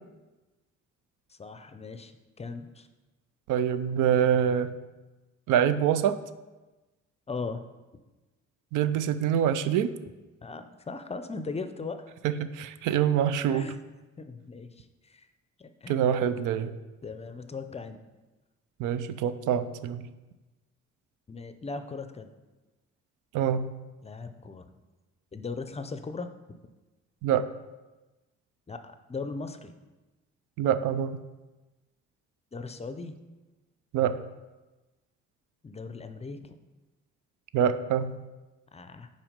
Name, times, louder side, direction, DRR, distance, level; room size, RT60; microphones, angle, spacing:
voice 1, 1.3-2.9 7.3-7.6 10.4-12.1 13.5-13.8 14.2-15.3 15.6-16.0 17.0-18.0 21.3-22.3 24.0-24.7 25.3-26.3 28.7-29.7 32.5-33.2 35.6-36.6 38.7-39.1, left 4 dB, 20° left, 9 dB, 0.5 m, -38 dB
voice 2, 3.5-4.7 5.5-6.2 8.7-9.9 12.2-13.7 15.9-16.7 18.8-20.1 23.3-23.7 27.2-27.5 30.6-31.2 33.9-34.2 37.5-38.1, right 9 dB, 85° right, 12 dB, 0.5 m, -25 dB
6.0 x 4.4 x 5.1 m, 1.1 s
cardioid pair, 90°, 30 cm